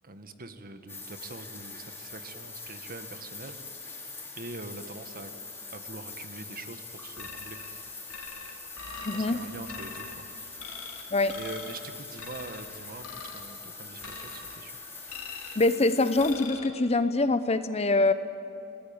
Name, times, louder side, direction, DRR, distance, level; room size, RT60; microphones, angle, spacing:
voice 1, 0.0-3.6 4.4-5.3 5.7-8.4 9.1-10.3 11.3-14.8, right 3 dB, 40° right, 8 dB, 1.5 m, -44 dB
sound 1, 0.9-16.3, left 3 dB, 10° left, 4.2 m, -43 dB
sound 2, 7.2-7.7 8.1-9.3 9.7-10.1 10.6-11.0 11.3-11.8 12.2-12.6 13.0-13.5 14.0-14.6 15.1-15.6 16.2-16.7, left 5 dB, 65° left, 3.0 m, -42 dB
voice 2, 9.0-9.4 11.1-11.4 15.6-18.1, left 2 dB, 30° left, 11 dB, 0.8 m, -24 dB
29.0 x 18.5 x 8.8 m, 2.7 s
head